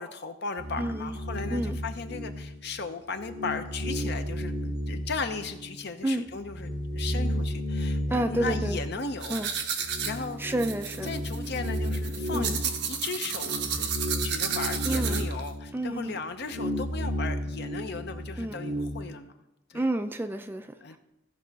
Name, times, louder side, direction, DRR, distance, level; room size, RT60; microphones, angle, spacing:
voice 1, 0.0-9.4 10.0-10.4 11.0-13.9 14.2-19.3 19.7-19.9 20.8-21.0, left 4 dB, 55° left, 8 dB, 0.8 m, -36 dB
sound 1, 0.6-2.8 3.2-5.9 6.3-19.1, equal, 40° right, 2.2 m, -33 dB
voice 2, 0.8-1.2 1.5-1.8 6.0-6.2 8.1-8.8 9.3-9.5 10.4-11.1 12.3-12.6 14.8-15.3 15.7-16.2 18.4-18.6 19.7-21.0, right 1 dB, 10° right, 8 dB, 0.4 m, -30 dB
sound 2, 9.2-15.5, right 7 dB, 60° right, 1.1 m, -32 dB
16.0 x 5.5 x 4.1 m, 0.92 s
head